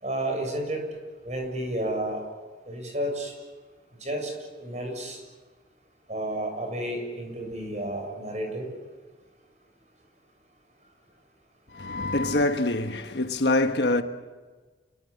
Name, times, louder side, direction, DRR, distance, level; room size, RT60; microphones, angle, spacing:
voice 1, 0.0-0.8 1.2-2.2 2.7-3.3 4.0-4.3 4.6-5.2 6.1-8.7, right 1 dB, 40° right, 7.6 m, -31 dB
voice 2, 11.7-14.0, left 2 dB, 65° left, 1.4 m, -25 dB
29.0 x 23.0 x 8.6 m
head